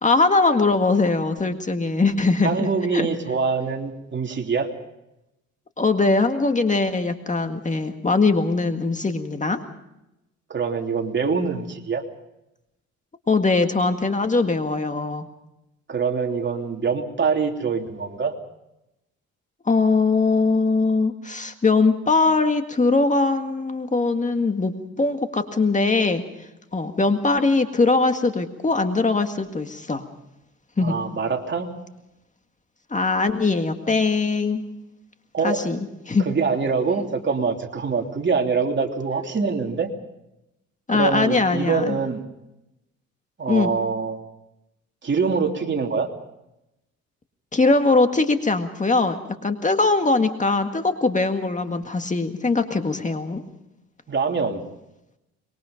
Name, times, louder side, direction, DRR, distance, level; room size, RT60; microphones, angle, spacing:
voice 1, 0.0-2.7 2.9-3.1 5.8-9.6 13.3-15.3 19.7-26.2 26.7-30.0 30.8-31.0 32.9-34.6 35.4-35.8 36.1-36.3 40.9-42.0 43.5-43.7 47.5-49.2 49.4-53.4, left 3 dB, 25° left, 6 dB, 1.9 m, -21 dB
voice 2, 2.4-4.7 10.5-12.0 15.9-18.3 30.8-31.7 35.3-35.6 36.2-39.9 40.9-42.2 43.4-44.2 45.0-46.1 54.1-54.6, right 5 dB, 40° right, 2 dB, 3.2 m, -24 dB
25.0 x 22.5 x 5.2 m, 0.89 s
cardioid pair, 90°, 30 cm